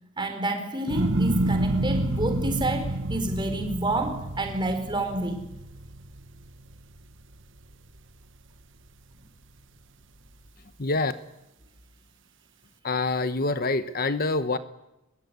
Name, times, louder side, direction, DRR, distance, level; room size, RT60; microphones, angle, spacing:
voice 1, 0.2-5.5, right 1 dB, 20° right, 6 dB, 4.5 m, -29 dB
sound 1, 0.9-7.2 7.6-8.2, right 1 dB, 60° right, 1.3 m, -29 dB
voice 2, 10.8-11.1 12.8-14.6, left 3 dB, 45° left, 12 dB, 1.0 m, -26 dB
23.0 x 22.0 x 9.6 m, 0.91 s
head